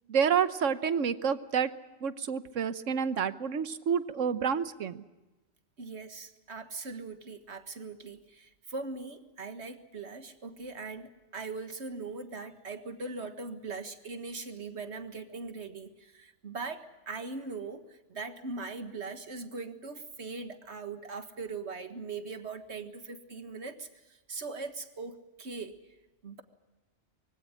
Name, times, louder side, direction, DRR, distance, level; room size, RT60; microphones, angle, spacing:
voice 1, 0.1-1.7 2.0-5.0, right 7 dB, 90° right, 13 dB, 1.4 m, -29 dB
voice 2, 5.8-25.8 26.2-26.4, right 4 dB, 65° right, 8 dB, 2.0 m, -40 dB
23.5 x 16.5 x 9.9 m, 1.1 s
omnidirectional pair, 1.3 m